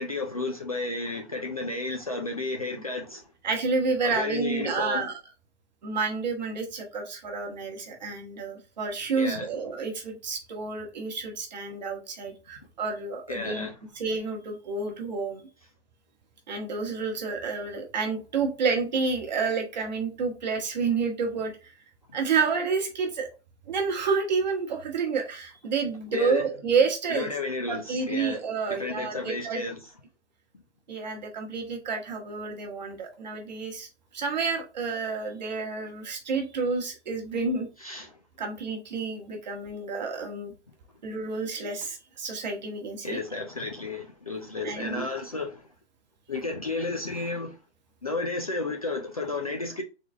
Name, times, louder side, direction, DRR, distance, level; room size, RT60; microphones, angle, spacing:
voice 1, 0.0-3.3 4.0-5.1 9.1-9.5 13.3-13.7 26.1-26.4 27.1-28.4 28.7-29.8 37.8-38.2 43.0-45.6 46.3-47.6 48.0-49.8, left 3 dB, 35° left, 0.4 m, -32 dB
voice 2, 3.4-5.1 5.8-13.7 13.9-15.4 16.5-21.7 22.1-23.3 23.7-27.3 27.7-29.6 30.9-33.9 34.1-37.7 38.4-40.5 41.0-43.2 44.6-45.1, right 4 dB, 40° right, 1.1 m, -29 dB
3.9 x 3.1 x 3.4 m
hypercardioid pair, 175°, 34 cm